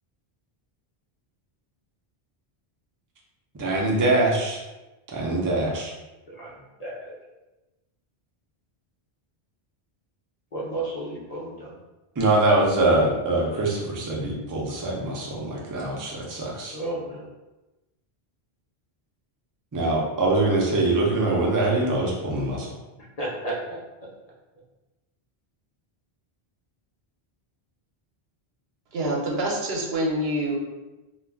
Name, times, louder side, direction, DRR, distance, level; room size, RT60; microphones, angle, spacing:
voice 1, 3.5-4.6 5.1-5.9 12.2-16.7 19.7-22.7, right 2 dB, 25° right, -3 dB, 0.4 m, -23 dB
voice 2, 6.8-7.1 10.5-11.7 16.7-17.2 23.2-23.5, right 2 dB, 45° left, -5 dB, 0.7 m, -32 dB
voice 3, 28.9-30.5, right 1 dB, 75° right, -3 dB, 0.9 m, -26 dB
2.4 x 2.2 x 3.4 m, 1.1 s
omnidirectional pair, 1.0 m